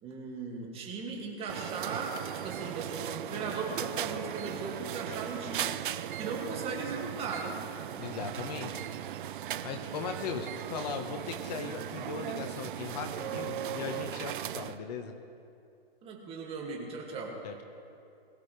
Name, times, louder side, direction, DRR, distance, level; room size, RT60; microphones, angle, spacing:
voice 1, 0.0-7.6 16.0-17.4, right 4 dB, 20° right, -1 dB, 2.4 m, -38 dB
sound 1, 1.5-14.8, right 11 dB, 55° right, 0.6 m, -38 dB
voice 2, 8.0-8.7 9.6-15.1 17.4-17.6, left 5 dB, 40° left, 5 dB, 1.3 m, -38 dB
22.0 x 15.5 x 3.4 m, 2.5 s
hypercardioid pair, 145°, 31 cm